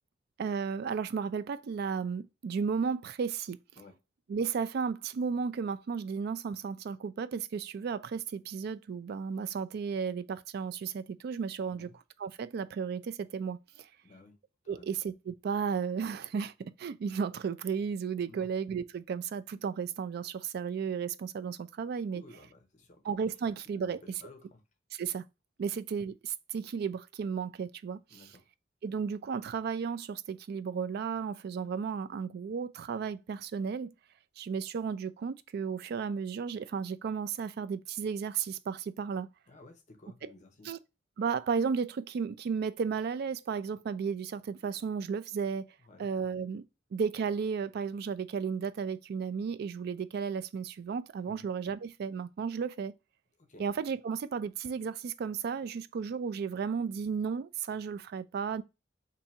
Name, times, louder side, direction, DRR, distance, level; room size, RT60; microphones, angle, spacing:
voice 1, 0.4-3.6 4.3-11.9 12.2-13.9 14.7-22.2 23.0-24.0 24.9-25.2 25.6-28.2 28.8-33.9 34.4-39.3 40.6-40.8 41.2-45.6 46.0-52.9 53.6-58.6, right 6 dB, 55° right, 0.3 m, -34 dB
voice 2, 14.0-14.4 14.6-14.9 18.3-18.5 22.1-23.0 23.7-24.6 28.1-28.4 39.5-40.7 45.9-46.1 51.3-51.5 53.4-53.7, left 2 dB, 40° left, 0.7 m, -54 dB
2.7 x 2.6 x 4.1 m
head